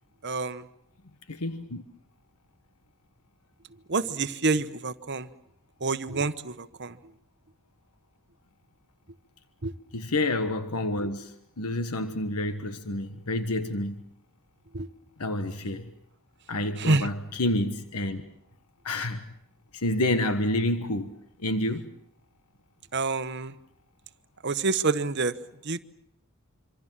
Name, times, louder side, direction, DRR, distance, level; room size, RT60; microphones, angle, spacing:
voice 1, 0.2-0.7 3.9-5.3 5.8-7.0 9.6-9.7 14.7-14.9 16.8-17.1 22.9-23.6 24.4-25.3 25.6-25.8, right 3 dB, 50° right, 12 dB, 1.0 m, -27 dB
voice 2, 1.3-1.8 9.9-11.3 11.6-14.0 15.2-15.9 16.5-18.2 18.8-19.2 19.7-21.1 21.4-21.9, left 1 dB, 90° left, 10 dB, 1.3 m, -28 dB
26.5 x 25.0 x 7.5 m, 0.71 s
head